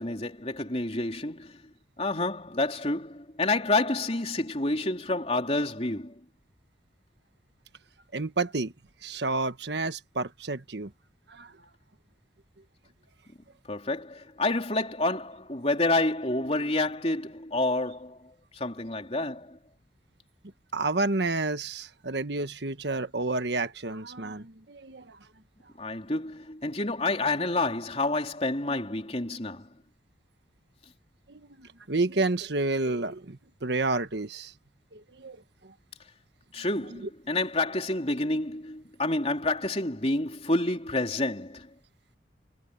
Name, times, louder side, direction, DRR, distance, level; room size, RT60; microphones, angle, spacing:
voice 1, 0.0-1.6 2.0-6.2 13.7-19.6 25.8-29.7 36.5-41.7, left 2 dB, 35° left, 3.6 m, -29 dB
voice 2, 8.1-8.7 9.0-10.9 11.3-11.5 20.7-25.0 31.3-34.5 34.9-35.4, right 3 dB, 70° right, 1.4 m, -30 dB
head